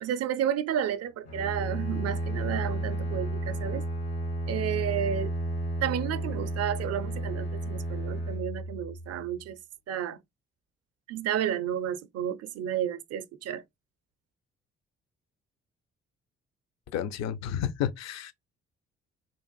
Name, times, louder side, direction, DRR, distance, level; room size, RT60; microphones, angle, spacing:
voice 1, 0.0-3.9 4.5-5.3 5.8-9.6 9.9-10.2 11.1-13.6, right 10 dB, 50° right, 0.5 m, -31 dB
Bowed string instrument, 1.2-9.2, right 1 dB, 85° left, 1.8 m, -32 dB
voice 2, 16.9-18.3, left 9 dB, 55° left, 0.5 m, -31 dB
3.0 x 2.4 x 2.3 m
hypercardioid pair, 45°, 33 cm